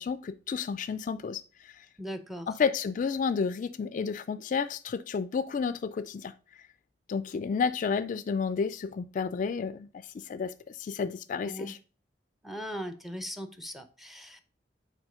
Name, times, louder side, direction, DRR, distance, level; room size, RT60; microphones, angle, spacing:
voice 1, 0.0-1.7 2.5-6.3 7.1-9.9 10.1-11.8, left 5 dB, 45° left, 0.3 m, -31 dB
voice 2, 2.0-2.5 11.4-11.7 12.4-14.5, equal, ahead, 0.6 m, -39 dB
6.2 x 4.4 x 3.6 m
head